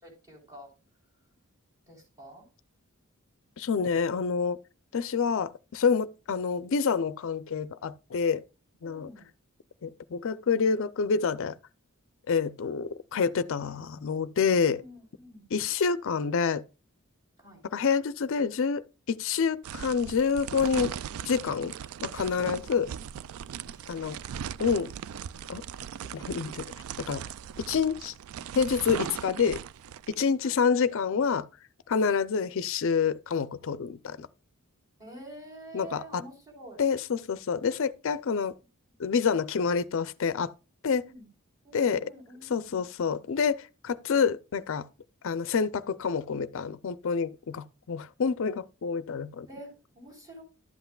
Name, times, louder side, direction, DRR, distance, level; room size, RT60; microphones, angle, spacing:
voice 1, 0.0-0.7 1.9-2.4 8.8-9.3 14.7-15.5 17.4-17.6 23.6-24.4 30.4-30.6 35.0-36.8 41.1-41.3 41.6-42.9 49.5-50.4, right 1 dB, 15° right, 3.7 m, -48 dB
voice 2, 3.6-4.6 4.9-8.4 8.8-9.1 9.8-11.5 12.3-14.8 15.5-16.6 17.7-20.9 21.3-21.7 22.0-22.9 23.9-24.2 24.6-24.9 25.5-25.6 26.1-26.7 27.0-27.2 27.6-28.1 28.5-29.6 30.1-31.5 31.9-34.3 35.7-36.2 36.8-38.6 39.0-40.5 40.8-41.0 41.7-42.1 42.5-44.9 45.2-49.5, left 6 dB, 60° left, 0.5 m, -27 dB
sound 1, 19.6-30.2, right 9 dB, 70° right, 0.3 m, -39 dB
12.0 x 8.0 x 2.3 m
head